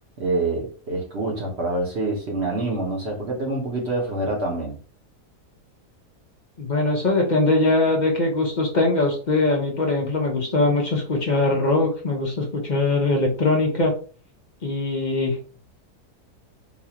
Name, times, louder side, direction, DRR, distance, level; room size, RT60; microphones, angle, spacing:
voice 1, 0.2-4.8, right 2 dB, 50° right, 1.1 m, -26 dB
voice 2, 6.6-13.9 14.6-15.4, left 2 dB, 40° left, 0.7 m, -21 dB
4.0 x 2.5 x 2.8 m
omnidirectional pair, 1.6 m